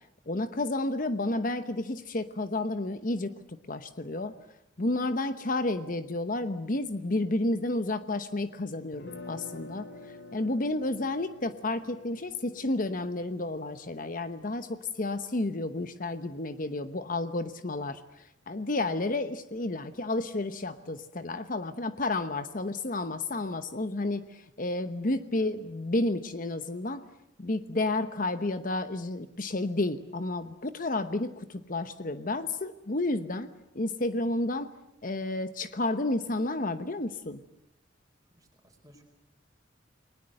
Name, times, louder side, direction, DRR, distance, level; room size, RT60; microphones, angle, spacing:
voice 1, 0.3-4.3 4.8-9.9 10.3-27.0 27.4-33.5 33.7-34.7 35.0-37.4, left 2 dB, 45° left, 10 dB, 1.0 m, -31 dB
sound 1, 8.9-14.9, left 3 dB, 65° left, 4.1 m, -49 dB
voice 2, 38.3-39.0, equal, 20° right, 4 dB, 4.6 m, -59 dB
29.5 x 20.0 x 7.8 m, 0.85 s
head